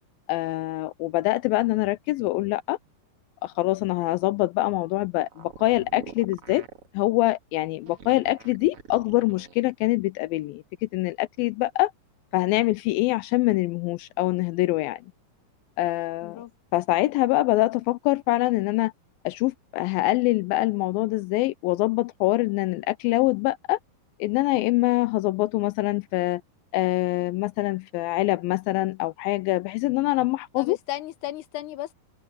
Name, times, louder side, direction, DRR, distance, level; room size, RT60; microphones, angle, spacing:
voice 1, 0.3-2.8 3.4-6.6 6.9-11.9 12.3-15.0 15.8-16.4 16.7-18.9 19.2-23.8 24.2-26.4 26.7-30.8, left 18 dB, 85° left, 2.4 m, -24 dB
sound 1, 5.3-6.9 7.8-9.6, right 6 dB, 45° right, 2.6 m, -44 dB
voice 2, 30.6-31.9, left 14 dB, 65° left, 2.4 m, -34 dB
omnidirectional pair, 4.2 m